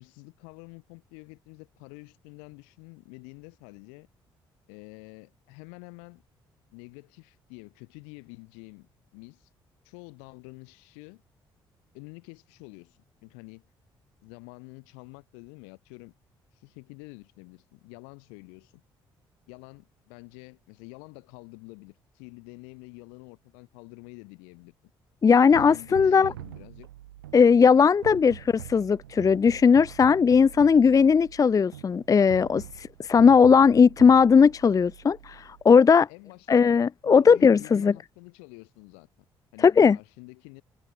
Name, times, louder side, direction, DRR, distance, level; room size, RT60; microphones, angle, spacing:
voice 1, 0.0-4.1 4.7-6.2 6.7-9.5 9.8-11.2 11.9-13.6 14.2-16.1 16.5-18.8 19.5-24.7 25.5-26.9 27.8-27.9 28.2-28.3 30.7-30.9 36.1-39.1 39.5-40.6, left 40 dB or more, 70° left, 2.3 m, -48 dB
voice 2, 25.2-26.3 27.3-36.1 36.5-37.9 39.6-40.0, left 6 dB, 30° left, 0.5 m, -18 dB
sound 1, 25.5-35.6, right 14 dB, 75° right, 1.9 m, -44 dB
figure-of-eight pair, 45°, 12 cm